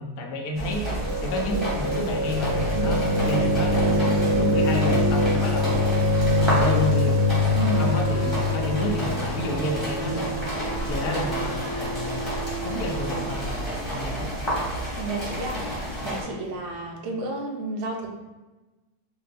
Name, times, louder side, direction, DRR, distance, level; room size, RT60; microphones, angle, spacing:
voice 1, 0.0-5.9 6.4-7.2 7.6-10.4 10.8-12.3 12.6-14.3, left 1 dB, 70° left, 2 dB, 1.0 m, -30 dB
sound 1, 0.5-16.2, equal, 20° left, 0.8 m, -31 dB
sound 2, 0.9-12.9, left 2 dB, 40° right, 1.1 m, -24 dB
Wind instrument woodwind instrument, 7.7-13.6, right 5 dB, 15° right, 0.6 m, -36 dB
voice 2, 15.0-18.1, right 2 dB, 75° right, 1 dB, 0.6 m, -31 dB
2.9 x 2.1 x 4.0 m, 1.1 s
omnidirectional pair, 1.8 m